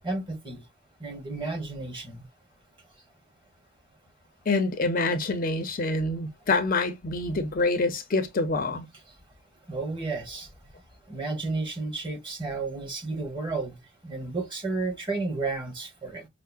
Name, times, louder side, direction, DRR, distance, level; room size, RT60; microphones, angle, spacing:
voice 1, 0.0-0.6 1.0-2.3 9.7-10.5 11.1-13.8 14.0-16.3, right 3 dB, 25° right, 1.2 m, -32 dB
voice 2, 4.5-8.9, left 3 dB, 40° left, 0.5 m, -26 dB
5.5 x 2.0 x 2.2 m
head